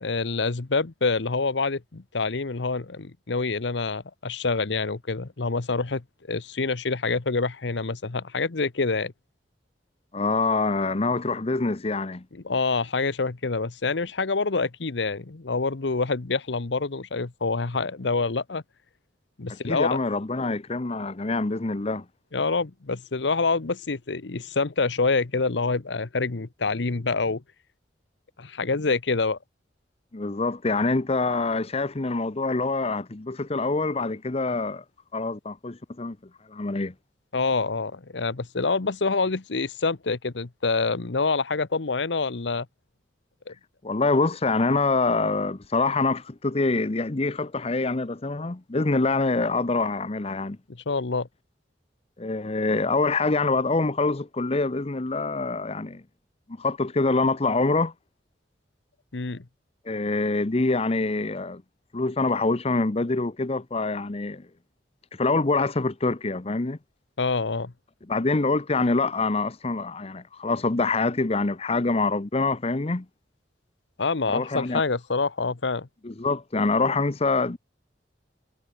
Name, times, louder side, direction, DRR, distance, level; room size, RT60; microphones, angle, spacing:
voice 1, 0.0-9.1 12.4-18.6 19.4-19.9 22.3-27.4 28.4-29.4 37.3-42.7 43.5-43.6 50.7-51.3 59.1-59.4 67.2-67.7 74.0-75.9, left 4 dB, 75° left, 0.9 m, -26 dB
voice 2, 10.1-12.2 19.5-22.0 30.1-34.8 35.1-36.2 36.5-36.9 43.8-50.6 52.2-56.0 56.6-57.9 59.8-61.6 61.9-64.5 65.1-66.8 68.1-73.1 74.3-74.8 76.0-77.6, left 3 dB, 35° left, 0.8 m, -25 dB
head